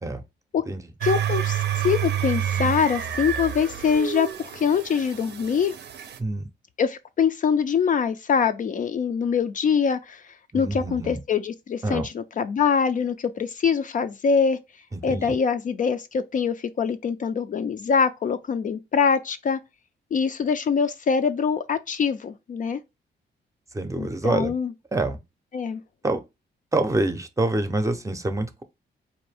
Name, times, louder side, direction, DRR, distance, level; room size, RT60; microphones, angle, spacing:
voice 1, 1.0-5.7 6.8-14.6 15.0-19.6 20.1-22.8 24.0-24.7 25.5-25.8, left 6 dB, 45° left, 0.4 m, -24 dB
sound 1, 1.0-6.2, right 10 dB, 65° right, 0.6 m, -28 dB
voice 2, 10.5-11.2 11.8-12.1 14.9-15.3 23.7-24.5 24.9-25.2 26.0-26.2 26.7-28.6, right 2 dB, 15° right, 0.6 m, -26 dB
4.3 x 2.6 x 3.2 m
cardioid pair, 110°, 19 cm